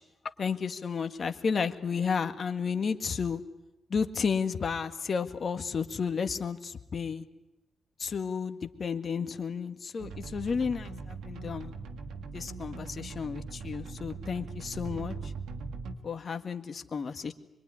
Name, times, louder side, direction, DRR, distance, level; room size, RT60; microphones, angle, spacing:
voice 1, 0.4-3.4 3.9-7.2 8.0-11.7 12.3-15.3 16.0-17.3, left 6 dB, 55° left, 8 dB, 1.8 m, -32 dB
sound 1, 10.0-15.9, right 4 dB, 80° right, 2.3 m, -40 dB
25.0 x 23.0 x 9.8 m, 0.91 s
supercardioid pair, 45°, 0 cm